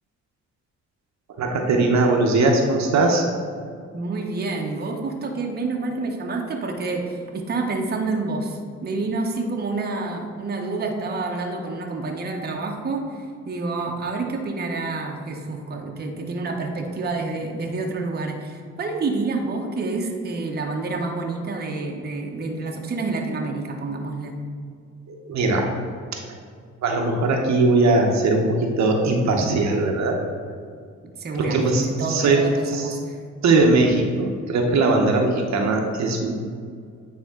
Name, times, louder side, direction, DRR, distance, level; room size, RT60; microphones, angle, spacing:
voice 1, 1.4-3.3 25.1-25.7 26.8-30.1 31.4-32.5 32.7-32.9 33.4-36.3, right 2 dB, 65° right, 2 dB, 0.9 m, -20 dB
voice 2, 3.9-24.4 31.0-33.2, right 3 dB, 30° right, 1 dB, 0.9 m, -28 dB
9.1 x 3.6 x 3.6 m, 2.2 s
cardioid pair, 90°, 30 cm